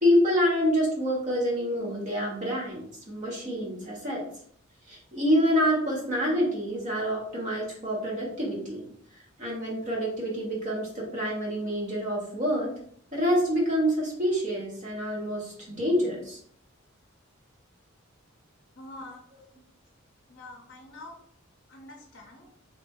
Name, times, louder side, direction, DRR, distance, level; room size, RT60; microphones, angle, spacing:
voice 1, 0.0-4.2 4.9-8.9 9.4-12.7 13.1-16.4, equal, 35° right, -3 dB, 1.1 m, -27 dB
voice 2, 18.8-19.2 20.3-21.2 21.7-22.5, left 2 dB, 55° left, 2 dB, 0.5 m, -45 dB
2.8 x 2.5 x 3.5 m, 0.63 s
head